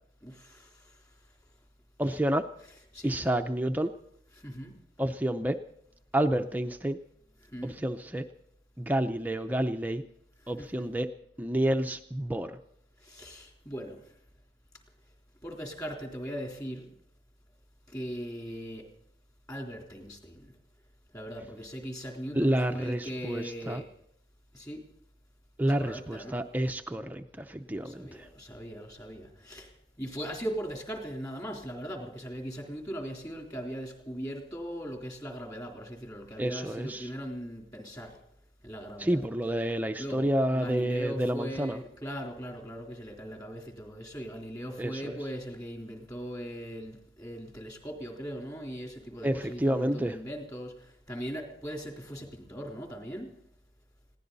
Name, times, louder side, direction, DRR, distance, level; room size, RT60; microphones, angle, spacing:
voice 1, 0.2-0.9 2.9-3.1 4.4-4.7 7.5-7.7 10.6-10.9 13.0-14.0 15.4-16.9 17.9-18.8 19.5-20.5 21.1-23.9 24.5-24.8 25.6-26.3 27.8-29.7 30.0-38.2 38.6-39.2 40.0-53.3, equal, 20° left, 1 dB, 3.6 m, -39 dB
voice 2, 2.0-2.4 3.0-3.9 5.0-5.6 6.1-7.0 7.6-8.2 8.8-10.0 10.5-11.1 11.4-12.6 22.3-23.8 25.6-28.1 36.4-37.1 39.0-41.8 44.8-45.2 49.2-50.2, right 1 dB, 10° right, 6 dB, 0.6 m, -29 dB
21.0 x 16.5 x 4.1 m, 0.73 s
head